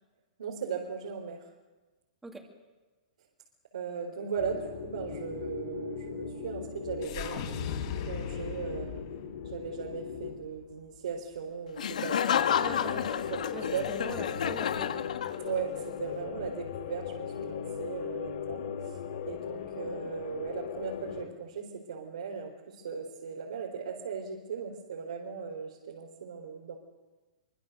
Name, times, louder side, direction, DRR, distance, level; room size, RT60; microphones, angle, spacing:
voice 1, 0.4-1.5 3.7-7.4 7.9-8.9 9.4-12.8 13.3-13.9 15.4-26.7, right 6 dB, 75° right, -1 dB, 4.2 m, -38 dB
sound 1, 4.4-10.3 12.3-21.3, left 7 dB, 60° left, 4.8 m, -38 dB
sound 2, 7.0-11.3, left 8 dB, 40° left, 3.8 m, -39 dB
Laughter, 11.8-15.7, left 8 dB, 75° left, 1.7 m, -30 dB
voice 2, 12.6-13.2 13.5-15.1, right 2 dB, 5° right, 1 dB, 2.5 m, -43 dB
25.0 x 24.5 x 6.8 m, 1.3 s
hypercardioid pair, 170°, 4 cm